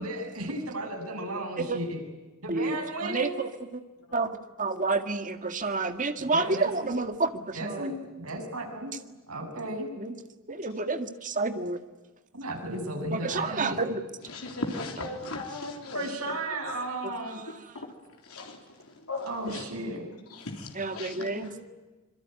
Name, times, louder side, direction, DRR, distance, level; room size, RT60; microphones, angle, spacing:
voice 1, 0.0-2.0 2.4-3.3 6.3-6.9 7.5-8.9 9.3-9.9 12.3-13.8 15.9-17.4 19.3-20.1, right 2 dB, 85° right, 3 dB, 7.9 m, -34 dB
voice 2, 2.5-3.8 4.1-7.9 10.0-10.1 10.5-11.8 13.1-14.0 17.0-17.4 20.8-21.5, right 3 dB, 40° right, 8 dB, 1.9 m, -30 dB
voice 3, 14.3-16.1 16.6-16.8 17.5-17.9 18.2-19.6 20.3-21.7, left 2 dB, 85° left, 2 dB, 3.7 m, -37 dB
26.0 x 23.0 x 9.5 m, 1.2 s
head